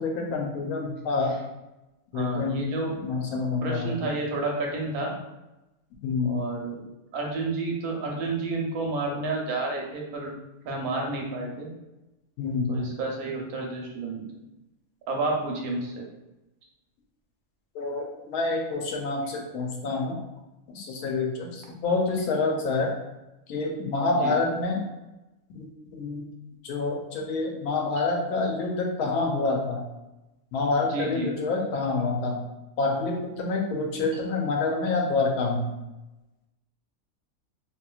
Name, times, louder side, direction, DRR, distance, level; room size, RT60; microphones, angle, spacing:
voice 1, 0.0-1.4 2.1-2.7 2.9-4.1 6.0-6.4 12.4-12.9 17.7-20.2 20.7-22.9 23.5-24.8 25.5-26.3 26.6-29.8 30.5-32.4 32.8-35.7, left 3 dB, 85° left, 1 dB, 1.1 m, -27 dB
voice 2, 2.1-2.9 3.6-5.1 6.2-6.8 7.1-10.3 10.6-11.7 12.7-14.3 15.1-16.0 24.2-24.3 30.9-31.3, right 2 dB, 85° right, -1 dB, 1.2 m, -30 dB
2.9 x 2.7 x 2.3 m, 0.99 s
omnidirectional pair, 1.5 m